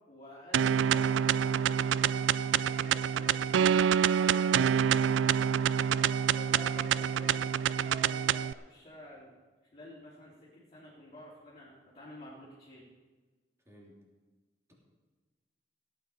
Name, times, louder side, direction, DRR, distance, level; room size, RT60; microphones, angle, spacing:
voice 1, 0.1-3.8 4.2-4.5 5.9-9.4 9.7-12.8, left 1 dB, 35° left, -8 dB, 3.2 m, -50 dB
sound 1, 0.5-8.5, right 8 dB, 85° right, 0.3 m, -27 dB
voice 2, 4.7-5.4 13.6-14.0, equal, 15° right, -3 dB, 3.2 m, -52 dB
16.5 x 9.3 x 5.6 m, 1.3 s
head